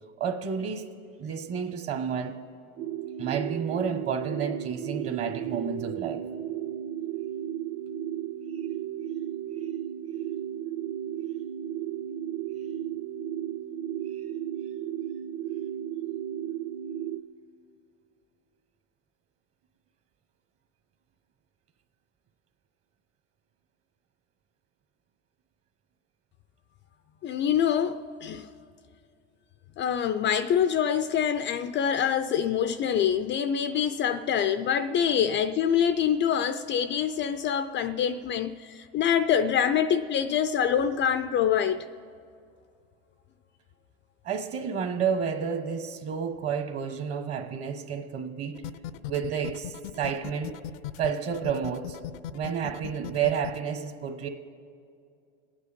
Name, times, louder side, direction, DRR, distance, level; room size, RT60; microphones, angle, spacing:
voice 1, 0.2-0.9 1.2-2.4 3.2-6.2 44.2-48.7 49.1-50.6 51.0-52.0 52.3-54.3, right 7 dB, 35° right, 1.3 m, -30 dB
sound 1, 2.8-17.2, right 10 dB, 65° right, 1.3 m, -34 dB
voice 2, 27.2-28.5 29.8-41.9, left 8 dB, 30° left, 0.4 m, -25 dB
sound 2, 48.6-53.6, left 13 dB, 85° left, 0.6 m, -37 dB
26.5 x 9.5 x 5.1 m
supercardioid pair, 120°, 38 cm